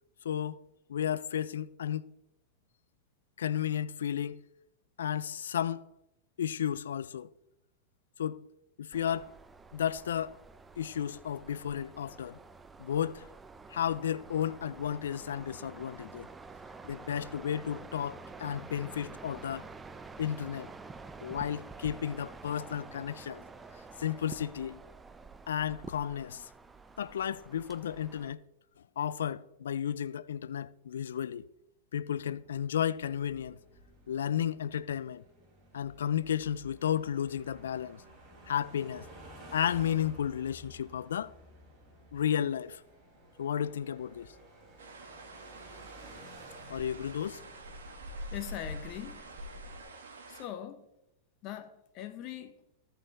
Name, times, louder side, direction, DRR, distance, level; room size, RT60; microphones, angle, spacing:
voice 1, 0.2-0.6 0.9-2.1 3.4-4.4 5.0-5.8 6.4-7.3 8.2-8.4 8.8-9.4 9.7-10.4 10.8-12.4 12.8-13.3 13.7-16.3 16.8-19.7 20.2-20.7 21.2-23.4 24.0-24.8 25.5-26.5 27.0-28.4 29.0-31.4 31.9-33.6 34.1-35.2 35.7-38.0 38.5-39.1 39.5-41.3 42.1-42.8 43.4-44.3 46.7-47.4, left 9 dB, 85° left, 0.3 m, -33 dB
sound 1, 8.9-28.3, right 4 dB, 15° right, 0.5 m, -49 dB
sound 2, 32.3-49.8, left 1 dB, 35° right, 3.8 m, -50 dB
sound 3, 44.8-50.5, right 4 dB, 80° right, 1.7 m, -50 dB
voice 2, 48.3-49.3 50.3-50.9 51.4-52.6, left 12 dB, 45° left, 0.8 m, -41 dB
13.5 x 5.6 x 4.1 m
hypercardioid pair, 110°, 0 cm